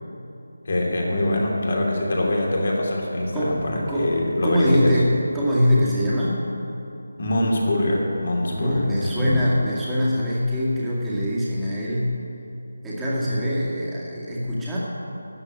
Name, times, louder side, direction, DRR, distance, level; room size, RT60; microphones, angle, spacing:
voice 1, 0.6-5.0 7.2-9.4, left 1 dB, 50° left, -1 dB, 2.9 m, -24 dB
voice 2, 4.4-6.4 8.5-12.2 12.8-14.8, equal, 5° right, -8 dB, 2.1 m, -23 dB
13.0 x 8.1 x 8.3 m, 2.9 s
figure-of-eight pair, 160°, 0 cm